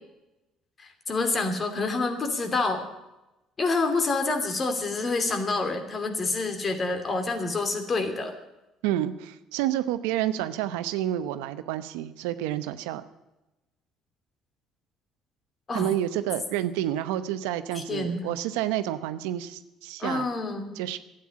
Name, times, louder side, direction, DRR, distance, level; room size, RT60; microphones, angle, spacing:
voice 1, 0.8-2.8 3.6-8.3 15.7-15.9 17.7-18.2 20.0-20.8, left 3 dB, 35° left, 6 dB, 2.8 m, -27 dB
voice 2, 8.8-13.0 15.7-20.3 20.8-21.0, right 12 dB, 90° right, 11 dB, 0.8 m, -29 dB
12.0 x 9.2 x 9.7 m, 0.98 s
supercardioid pair, 80°, 0 cm